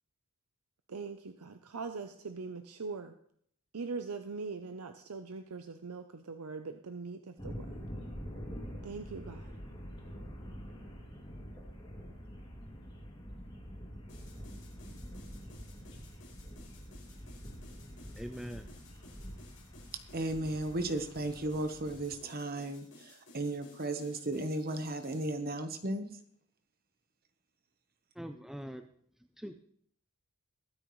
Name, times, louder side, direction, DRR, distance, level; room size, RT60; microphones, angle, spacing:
voice 1, 0.9-3.1 3.7-7.7 8.8-9.5, right 4 dB, 80° right, 7 dB, 0.7 m, -41 dB
sound 1, 7.4-22.2, equal, 20° left, 2.5 m, -46 dB
sound 2, 14.1-25.3, left 2 dB, 55° left, 6.1 m, -57 dB
voice 2, 18.1-18.7 28.2-28.9 29.4-29.6, equal, ahead, 6 dB, 0.4 m, -42 dB
voice 3, 20.1-26.1, right 1 dB, 45° right, 8 dB, 1.1 m, -35 dB
22.5 x 8.9 x 3.2 m, 0.64 s
head